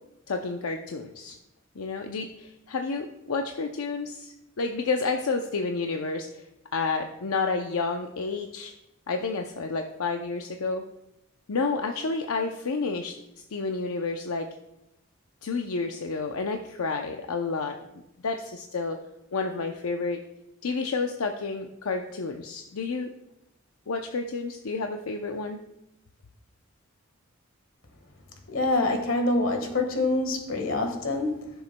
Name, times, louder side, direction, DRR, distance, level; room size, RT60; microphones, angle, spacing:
voice 1, 0.3-1.4 1.8-6.5 6.7-8.7 9.1-10.8 11.5-13.1 13.5-14.5 15.4-17.8 18.2-19.0 19.3-20.2 20.6-23.1 23.9-25.6, left 4 dB, 85° left, 4 dB, 0.6 m, -30 dB
voice 2, 28.5-31.5, left 2 dB, 65° left, 4 dB, 1.5 m, -26 dB
14.5 x 6.8 x 2.2 m, 0.88 s
head